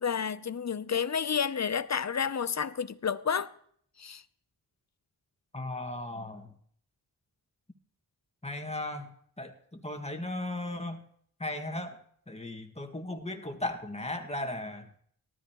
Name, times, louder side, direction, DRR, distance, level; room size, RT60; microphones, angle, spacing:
voice 1, 0.0-3.5 4.0-4.2, left 7 dB, 40° left, 0.7 m, -30 dB
voice 2, 5.5-6.5 8.4-11.0 11.4-12.0 12.3-14.9, left 1 dB, 15° left, 1.9 m, -36 dB
18.0 x 13.5 x 3.1 m
cardioid pair, 45°, 42 cm